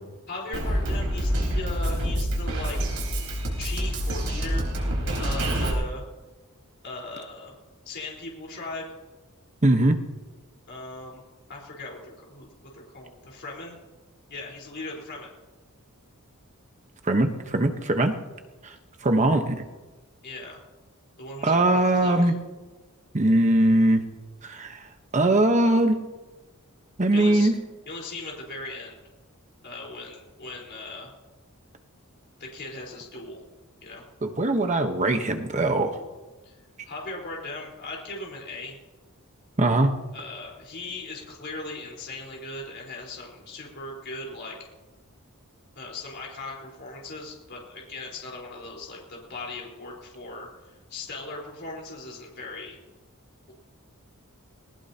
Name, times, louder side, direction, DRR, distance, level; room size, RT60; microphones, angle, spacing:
voice 1, 0.3-2.8 3.6-4.7 5.2-6.0 6.8-7.5 7.8-8.9 10.7-11.2 11.5-12.5 12.7-13.8 14.3-15.3 20.2-20.6 21.2-22.3 27.1-27.5 27.9-29.0 29.6-31.1 32.4-33.4 33.8-34.0 36.4-36.5 36.8-38.8 40.1-44.7 45.8-52.8, left 2 dB, 50° left, -2 dB, 4.3 m, -38 dB
Drum kit, 0.5-5.7, equal, 70° right, 4.4 m, -27 dB
voice 2, 9.6-10.0 17.0-18.1 18.6-18.7 19.0-19.6 21.4-22.3 23.1-24.1 24.4-24.9 25.1-26.0 27.0-27.5 34.2-36.0 39.6-40.0, right 1 dB, 35° right, 6 dB, 1.1 m, -21 dB
20.0 x 18.5 x 2.9 m, 1.2 s
head